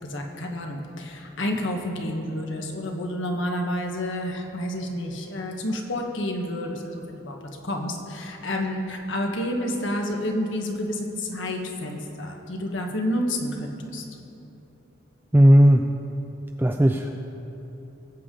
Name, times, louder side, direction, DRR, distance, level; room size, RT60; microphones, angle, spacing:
voice 1, 0.0-14.0, left 1 dB, 70° left, 2 dB, 1.3 m, -29 dB
voice 2, 15.3-15.9 16.6-17.1, equal, 10° right, 3 dB, 0.3 m, -15 dB
19.0 x 8.2 x 3.8 m, 2.9 s
head